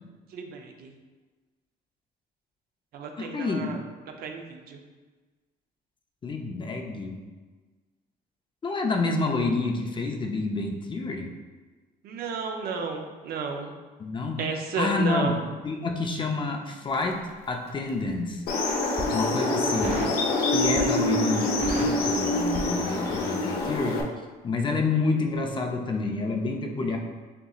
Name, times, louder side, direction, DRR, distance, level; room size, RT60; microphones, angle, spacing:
voice 1, 0.3-0.9 2.9-3.8 4.2-4.8 12.0-13.7 14.4-15.4, right 5 dB, 65° right, 3 dB, 0.6 m, -33 dB
voice 2, 3.2-3.7 6.2-7.2 8.6-11.3 14.0-14.4 14.8-15.4 15.6-17.2 17.5-18.4 19.1-20.0 20.5-24.0 24.4-27.0, left 3 dB, 30° left, 3 dB, 0.5 m, -28 dB
Crackle, 16.9-18.0 18.6-19.1 19.8-20.2 20.6-21.1 21.4-23.3 23.6-23.8, right 2 dB, 40° right, 0.9 m, -35 dB
sound 1, 18.5-24.0, left 2 dB, 70° left, 0.7 m, -26 dB
6.7 x 2.9 x 2.4 m, 1.4 s
cardioid pair, 110°, 17 cm